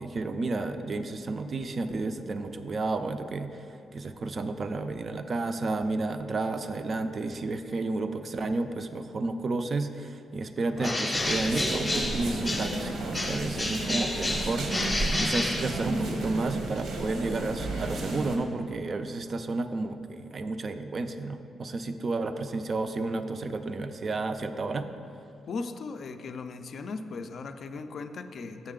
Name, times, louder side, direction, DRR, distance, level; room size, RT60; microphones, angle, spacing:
voice 1, 0.0-24.9, right 3 dB, 35° right, 9 dB, 0.3 m, -32 dB
Bird, 10.8-12.9 13.1-16.2, left 2 dB, 15° left, 0.7 m, -31 dB
sound 1, 11.1-18.4, right 2 dB, 80° right, 0.9 m, -32 dB
voice 2, 25.5-28.7, left 4 dB, 50° left, 8 dB, 0.3 m, -37 dB
7.1 x 6.3 x 3.7 m, 2.6 s
wide cardioid pair, 155°, 0 cm